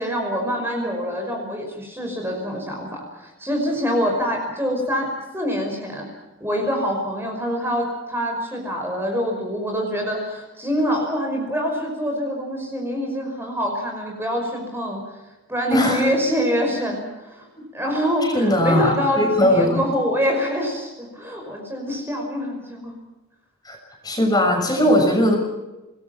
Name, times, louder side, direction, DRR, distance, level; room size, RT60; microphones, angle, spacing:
voice 1, 0.0-6.1 6.4-15.0 15.5-17.5 17.7-22.9, equal, 10° right, 1 dB, 5.6 m, -25 dB
voice 2, 15.7-16.0 18.2-19.8 23.6-23.8 24.0-25.4, left 1 dB, 20° left, 2 dB, 6.6 m, -19 dB
26.5 x 21.0 x 5.9 m, 1.0 s
head